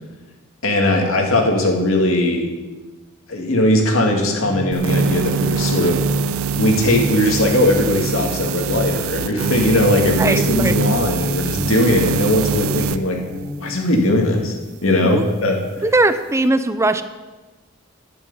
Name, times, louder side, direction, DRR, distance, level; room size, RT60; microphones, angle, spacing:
voice 1, 0.6-2.5 3.3-6.0 6.5-13.2 13.6-14.6 14.8-15.6, left 1 dB, 65° left, 1 dB, 2.2 m, -19 dB
sound 1, 4.4-13.8, equal, 30° left, 2.8 m, -30 dB
sound 2, 4.7-13.0, right 6 dB, 70° right, 0.5 m, -23 dB
voice 2, 10.2-10.7 15.1-15.2 15.8-17.0, right 2 dB, 15° right, 11 dB, 0.5 m, -19 dB
11.5 x 11.0 x 5.5 m, 1.2 s
head